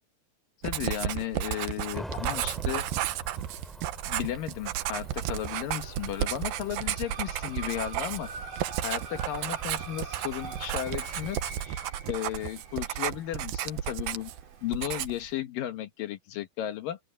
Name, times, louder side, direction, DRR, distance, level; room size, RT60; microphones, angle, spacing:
voice 1, 0.6-2.8 4.1-8.3 8.8-11.8 12.1-14.3 14.6-17.0, left 12 dB, 65° left, 2.4 m, -34 dB
Writing, 0.6-14.4 14.7-15.3, right 12 dB, 70° right, 2.4 m, -33 dB
Cricket / Motor vehicle (road), 1.9-11.7, equal, ahead, 3.5 m, -47 dB
sound 1, 4.8-14.7, right 4 dB, 50° right, 5.8 m, -46 dB
open air
omnidirectional pair, 5.1 m